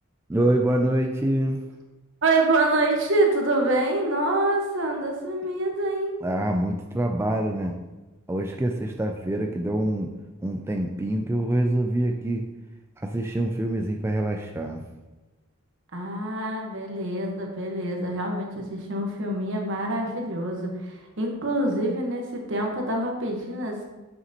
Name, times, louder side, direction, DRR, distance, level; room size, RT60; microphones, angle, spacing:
voice 1, 0.3-1.6 6.2-7.8 8.3-10.1 10.4-12.5 13.0-14.9, right 1 dB, 10° right, 2 dB, 0.3 m, -25 dB
voice 2, 2.2-6.1 15.9-23.8, right 2 dB, 60° right, 1 dB, 1.2 m, -26 dB
6.9 x 6.7 x 2.9 m, 1.1 s
head